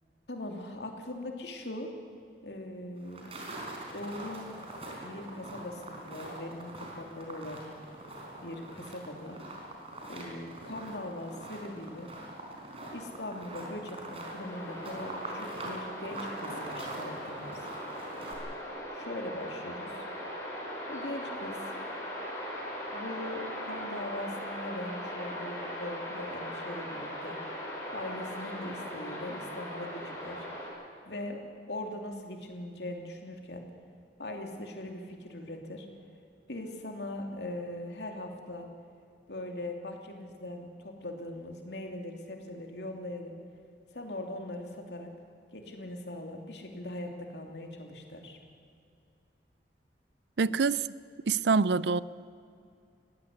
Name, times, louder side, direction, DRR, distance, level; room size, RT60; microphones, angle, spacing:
voice 1, 0.3-1.9 2.4-3.3 3.9-4.5 5.0-7.6 8.4-9.4 10.1-12.1 12.9-17.6 18.9-20.1 20.9-21.6 22.9-27.6 27.9-30.5 31.0-33.7 34.2-35.9 36.5-38.7 39.3-43.4 43.9-45.1 45.5-48.4, left 1 dB, 75° left, 3 dB, 2.9 m, -40 dB
sound 1, 3.0-18.3, right 1 dB, 35° right, 4.4 m, -43 dB
sound 2, 14.4-30.7, equal, 15° left, 5.8 m, -39 dB
voice 2, 50.4-50.9 51.3-52.0, right 4 dB, 75° right, 19 dB, 0.5 m, -25 dB
20.5 x 16.5 x 8.4 m, 2.4 s
head